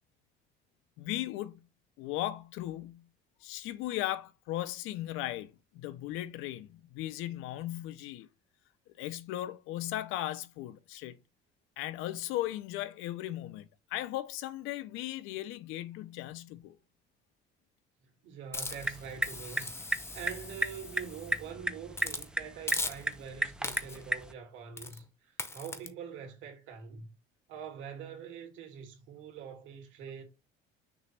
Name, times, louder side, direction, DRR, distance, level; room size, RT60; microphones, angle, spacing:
voice 1, 1.0-1.7 2.0-3.1 3.4-8.3 9.0-11.2 11.8-16.8, left 14 dB, 85° left, 0.8 m, -37 dB
voice 2, 18.0-27.1 27.5-30.2, right 7 dB, 70° right, 2.6 m, -45 dB
Hiss, 18.5-21.4 21.9-22.3 22.7-23.3 23.6-24.1 24.8-25.0 25.4-25.9, left 3 dB, 10° left, 0.8 m, -39 dB
sound 1, 18.7-24.3, right 1 dB, 5° right, 0.4 m, -35 dB
6.5 x 3.0 x 5.8 m
cardioid pair, 150°, 21 cm